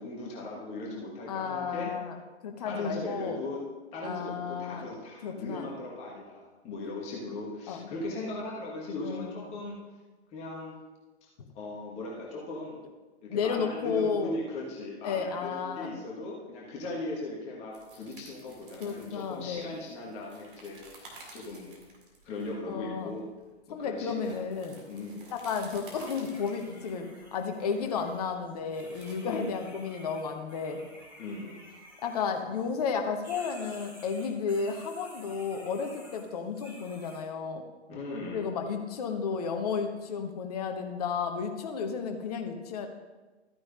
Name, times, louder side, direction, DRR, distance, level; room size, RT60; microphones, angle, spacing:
voice 1, 0.0-1.9 2.6-3.6 3.9-9.8 10.3-10.7 11.5-12.8 13.2-21.7 22.2-23.3 23.7-24.4 24.9-25.3 29.2-29.5 31.2-31.5 37.9-38.5, left 2 dB, 20° left, -3 dB, 1.4 m, -38 dB
voice 2, 1.3-2.2 2.4-3.4 4.0-4.9 5.2-5.7 7.7-7.9 9.0-9.5 13.3-14.4 15.0-16.0 18.8-19.8 22.7-23.1 23.7-24.8 25.3-30.8 32.0-37.6 38.3-42.9, left 5 dB, 35° left, 5 dB, 1.0 m, -33 dB
sound 1, 17.7-29.1, right 2 dB, 50° right, 2.4 m, -53 dB
sound 2, 25.9-32.9 33.2-37.2, equal, 5° right, 1.7 m, -52 dB
13.5 x 9.3 x 2.5 m, 1.2 s
figure-of-eight pair, 125°, 34 cm